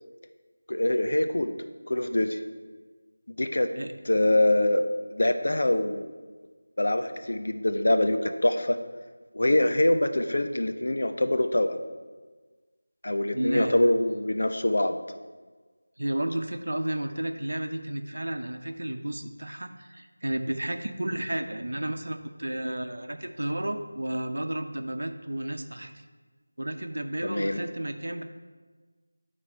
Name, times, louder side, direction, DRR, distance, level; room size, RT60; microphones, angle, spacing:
voice 1, 0.7-1.5 1.9-2.4 3.4-3.7 4.1-6.1 6.8-8.8 9.3-11.8 13.0-14.9 27.2-27.6, left 1 dB, 65° left, 7 dB, 0.7 m, -24 dB
voice 2, 13.3-13.9 16.0-25.9 26.6-28.2, right 1 dB, 75° right, 7 dB, 0.8 m, -32 dB
12.5 x 4.2 x 4.4 m, 1.4 s
figure-of-eight pair, 175°, 0 cm